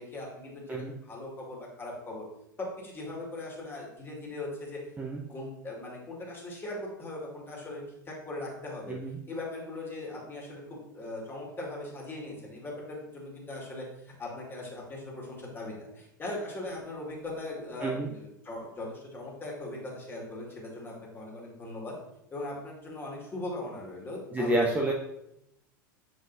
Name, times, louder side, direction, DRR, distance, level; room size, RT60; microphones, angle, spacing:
voice 1, 0.0-2.3 2.6-4.8 5.3-9.0 9.3-21.9 22.3-24.7, left 2 dB, 20° left, -3 dB, 2.2 m, -39 dB
voice 2, 8.9-9.2 17.8-18.1 24.3-24.9, right 1 dB, 15° right, 0 dB, 0.7 m, -29 dB
7.4 x 4.7 x 2.7 m, 0.81 s
figure-of-eight pair, 85°, 11 cm